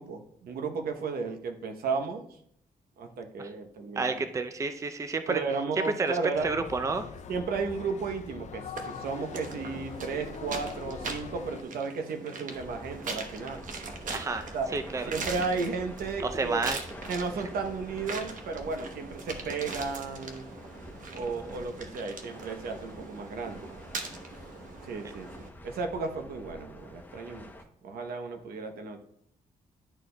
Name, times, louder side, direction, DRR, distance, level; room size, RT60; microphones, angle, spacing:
voice 1, 0.0-2.3 3.0-4.2 5.3-6.5 7.3-13.6 14.5-14.7 15.1-16.7 17.1-20.5 21.1-23.7 24.8-27.5 27.8-29.0, right 4 dB, 90° right, 5 dB, 0.8 m, -34 dB
voice 2, 4.0-5.4 5.8-7.1 14.1-15.1 16.2-16.8, right 3 dB, 20° right, 8 dB, 0.4 m, -30 dB
sound 1, 6.3-11.6, left 7 dB, 50° left, 0.4 m, -42 dB
sound 2, 8.8-25.5, right 4 dB, 60° right, 0.9 m, -41 dB
sound 3, 12.6-27.6, left 1 dB, 10° left, 0.7 m, -48 dB
11.0 x 4.2 x 2.2 m, 0.69 s
cardioid pair, 115°, 15 cm